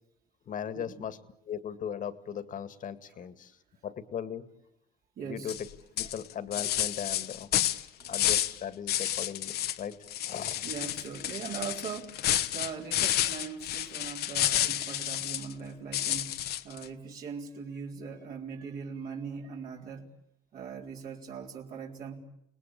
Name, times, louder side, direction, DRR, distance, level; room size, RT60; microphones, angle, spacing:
voice 1, 0.5-1.2 1.5-3.5 3.8-4.5 5.2-5.7 6.0-7.5 8.1-10.0 10.3-10.7, left 8 dB, 50° left, 12 dB, 2.0 m, -38 dB
voice 2, 5.2-5.5 6.0-6.1 8.0-8.1 10.6-12.2 12.5-20.0 20.5-22.2, right 6 dB, 60° right, -1 dB, 4.0 m, -40 dB
sound 1, 5.5-5.7 6.0-8.6 8.9-9.8 10.1-15.5 15.9-16.8, left 12 dB, 70° left, 1.2 m, -30 dB
29.5 x 20.0 x 8.6 m, 0.78 s
cardioid pair, 110°, 17 cm